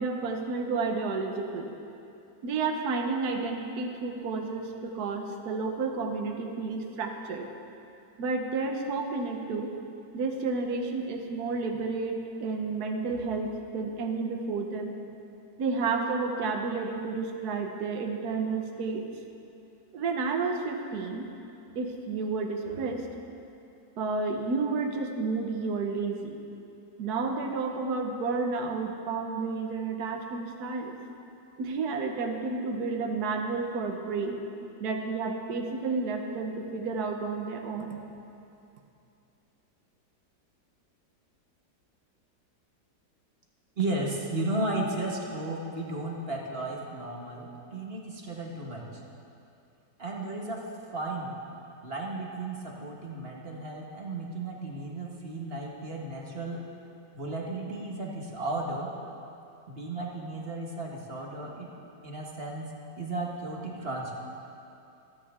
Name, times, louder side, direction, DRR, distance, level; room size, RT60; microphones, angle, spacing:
voice 1, 0.0-1.7 2.4-7.5 8.2-9.7 10.1-15.0 15.6-19.0 19.9-21.3 21.7-23.1 24.0-26.4 27.0-30.9 31.6-34.4 34.8-38.0, right 4 dB, 60° right, 3 dB, 1.5 m, -31 dB
voice 2, 43.8-49.0 50.0-51.3 51.8-56.7 57.1-58.9 59.7-61.7 62.0-64.1, right 2 dB, 35° right, -2 dB, 1.6 m, -34 dB
26.0 x 9.5 x 3.7 m, 2.7 s
omnidirectional pair, 2.0 m